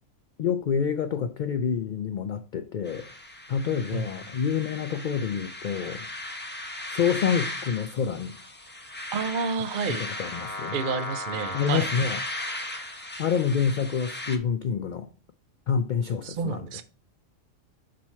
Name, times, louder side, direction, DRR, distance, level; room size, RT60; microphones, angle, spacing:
voice 1, 0.4-3.1 3.5-6.1 6.9-8.4 9.9-10.8 11.5-12.2 12.5-12.7 13.2-15.1 15.7-16.7, left 7 dB, 75° left, 0.4 m, -27 dB
sound 1, 2.9-14.4, left 1 dB, 10° left, 0.7 m, -36 dB
voice 2, 9.1-10.0 10.7-11.9 16.2-16.8, right 5 dB, 55° right, 0.6 m, -30 dB
6.4 x 4.3 x 4.4 m
omnidirectional pair, 1.3 m